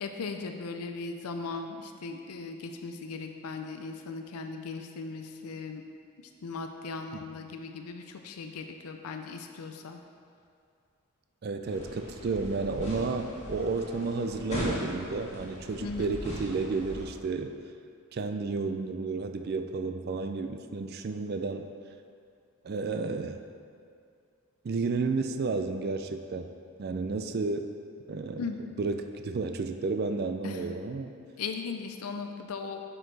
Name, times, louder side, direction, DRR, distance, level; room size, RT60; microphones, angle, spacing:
voice 1, 0.0-5.8 6.4-10.0 15.8-16.1 28.4-28.6 30.4-30.6 31.4-32.9, left 4 dB, 85° left, 5 dB, 0.5 m, -38 dB
voice 2, 11.4-17.5 18.1-21.7 22.6-23.4 24.6-26.5 26.8-27.7 28.1-28.4 28.8-31.1, right 4 dB, 45° right, 7 dB, 0.3 m, -32 dB
sound 1, 11.6-17.0, equal, 30° left, 1.7 m, -38 dB
9.0 x 6.0 x 3.3 m, 2.4 s
head